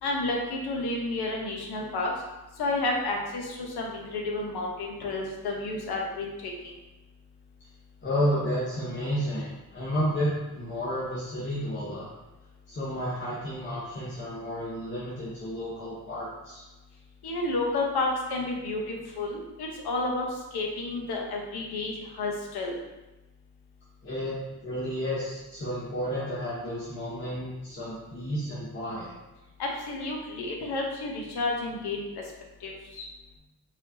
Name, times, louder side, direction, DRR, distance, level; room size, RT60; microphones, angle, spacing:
voice 1, 0.0-2.1 2.6-6.5 17.2-20.2 20.5-22.7 29.6-32.0 32.6-33.0, left 2 dB, 80° left, 0 dB, 1.0 m, -31 dB
voice 2, 8.0-12.1 12.7-16.6 24.0-29.1, equal, 30° left, -10 dB, 1.1 m, -31 dB
5.0 x 3.5 x 2.8 m, 1.1 s
wide cardioid pair, 170°, 38 cm